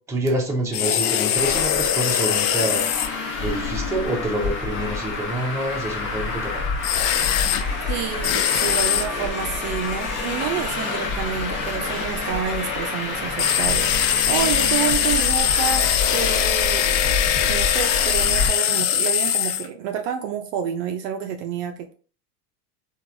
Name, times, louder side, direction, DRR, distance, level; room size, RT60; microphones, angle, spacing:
voice 1, 0.1-2.9 3.4-6.6, right 1 dB, 5° right, -1 dB, 0.6 m, -27 dB
sound 1, 0.7-3.1 6.8-7.6 8.2-9.1 13.4-19.7, left 10 dB, 65° left, 0.5 m, -21 dB
Traffic noise roadway noise, 1.4-18.5, left 3 dB, 40° left, 0.9 m, -28 dB
voice 2, 7.9-17.1 17.4-21.9, right 8 dB, 50° right, 5 dB, 0.5 m, -29 dB
3.1 x 2.4 x 2.5 m, 0.39 s
supercardioid pair, 120°, 46 cm